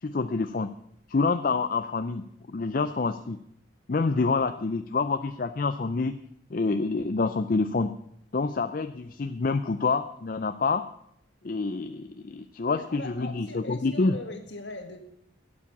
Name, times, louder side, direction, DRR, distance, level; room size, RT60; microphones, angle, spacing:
voice 1, 0.0-0.8 1.1-3.4 3.9-6.2 6.5-8.0 8.3-10.9 11.4-14.1, left 4 dB, 45° left, 9 dB, 0.5 m, -27 dB
voice 2, 12.7-15.0, left 2 dB, 65° left, 5 dB, 2.0 m, -41 dB
12.0 x 8.6 x 8.4 m, 0.73 s
head